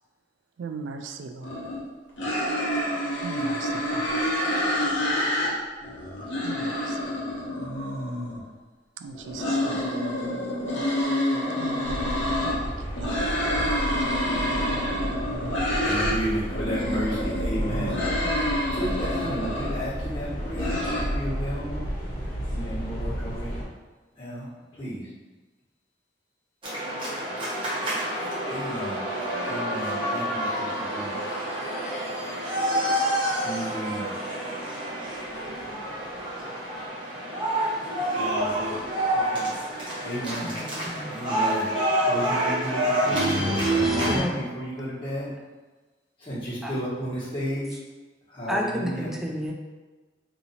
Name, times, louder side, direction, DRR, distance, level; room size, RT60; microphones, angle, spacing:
voice 1, 0.6-1.7 3.2-4.4 6.4-7.1 9.0-9.9 11.6-12.1 12.4-13.3, right 4 dB, 80° right, 6 dB, 0.3 m, -39 dB
sound 1, 1.4-1.8 2.2-5.5 5.8-8.4 9.1-12.6 12.9-16.2 16.5-19.8 20.3-21.0, left 1 dB, 85° left, 0.9 m, -28 dB
sound 2, 11.8-23.6, equal, 55° left, 1.0 m, -32 dB
voice 2, 15.8-18.1 18.7-21.9 22.5-23.6 24.1-24.5 24.7-25.1 28.2-29.0 29.4-31.2 33.4-34.1 38.2-39.5 40.0-40.5 40.9-41.7 42.1-45.3 46.2-47.8 48.3-49.1, equal, 30° left, -10 dB, 1.4 m, -33 dB
sound 3, 26.6-44.2, right 1 dB, 30° right, 1.1 m, -28 dB
voice 3, 40.4-41.1 43.8-44.4 46.6-46.7 48.5-49.5, equal, 5° right, -1 dB, 0.4 m, -31 dB
2.8 x 2.7 x 4.1 m, 1.3 s
head